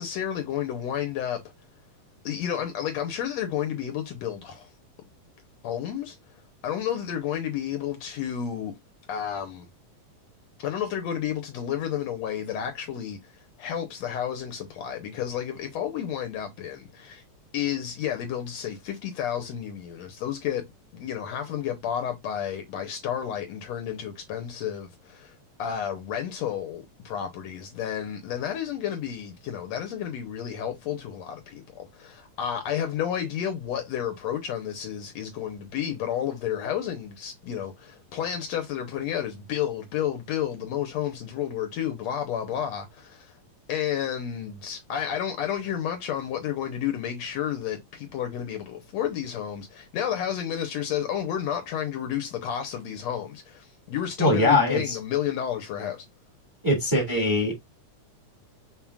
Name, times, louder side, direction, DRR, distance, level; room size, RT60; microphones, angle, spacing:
voice 1, 0.0-1.4 2.2-4.7 5.6-6.2 6.6-8.7 9.1-9.7 10.6-17.2 17.5-20.6 20.9-43.3 43.7-56.0, left 9 dB, 75° left, 1.8 m, -31 dB
voice 2, 54.2-55.0 56.6-57.5, left 2 dB, 10° right, 1.7 m, -22 dB
6.0 x 3.7 x 2.4 m
omnidirectional pair, 3.4 m